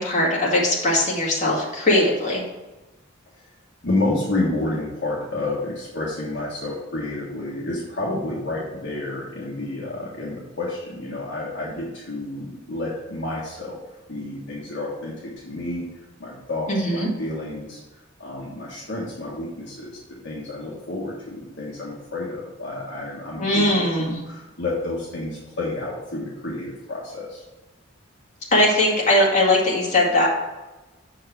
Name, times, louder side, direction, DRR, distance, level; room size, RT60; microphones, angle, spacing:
voice 1, 0.0-2.4 16.7-17.1 23.4-24.2 28.5-30.3, left 1 dB, 35° left, -4 dB, 2.2 m, -20 dB
voice 2, 3.8-13.8 14.1-15.9 16.2-17.8 18.2-27.4, left 2 dB, 60° left, -5 dB, 1.5 m, -30 dB
6.7 x 4.7 x 6.0 m, 1.1 s
head